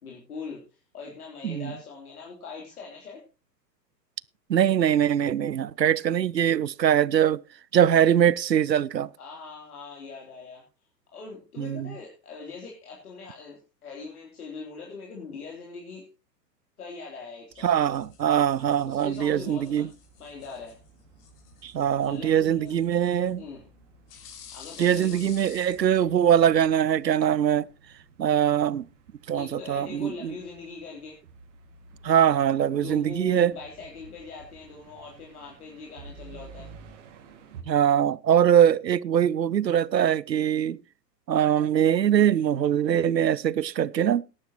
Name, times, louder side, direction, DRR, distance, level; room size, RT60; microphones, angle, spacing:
voice 1, 0.0-3.2 9.2-10.6 11.1-16.1 16.8-17.7 18.8-19.9 20.2-20.8 22.0-22.8 23.4-23.6 24.5-25.2 29.3-31.2 32.7-36.7, left 4 dB, 60° left, 3.6 m, -41 dB
voice 2, 4.5-7.4 7.7-9.1 11.6-11.9 17.6-19.9 21.6-23.4 24.8-27.7 28.2-28.8 29.3-30.3 32.0-33.5 37.7-40.8 41.3-44.2, right 9 dB, 80° right, 0.6 m, -22 dB
sound 1, 17.5-26.7, left 7 dB, 35° left, 3.4 m, -51 dB
sound 2, 19.4-37.6, right 5 dB, 45° right, 2.2 m, -53 dB
19.5 x 10.5 x 3.0 m
figure-of-eight pair, 105°, 50 cm